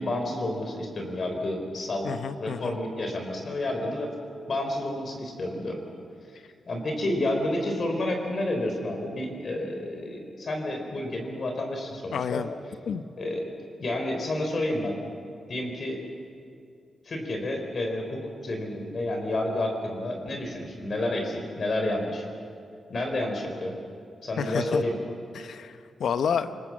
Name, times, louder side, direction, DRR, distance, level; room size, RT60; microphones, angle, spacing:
voice 1, 0.0-2.1 2.4-4.1 4.5-5.8 6.3-6.4 6.7-12.4 13.2-13.5 13.8-15.0 15.5-16.0 17.1-22.3 22.9-23.8 24.2-24.9, left 1 dB, 50° left, 3 dB, 3.6 m, -30 dB
voice 2, 2.0-2.8 12.1-12.5 12.9-13.0 24.4-24.8 25.3-26.6, left 7 dB, 80° left, 11 dB, 0.8 m, -30 dB
27.0 x 20.0 x 7.4 m, 2.4 s
cardioid pair, 100°, 0 cm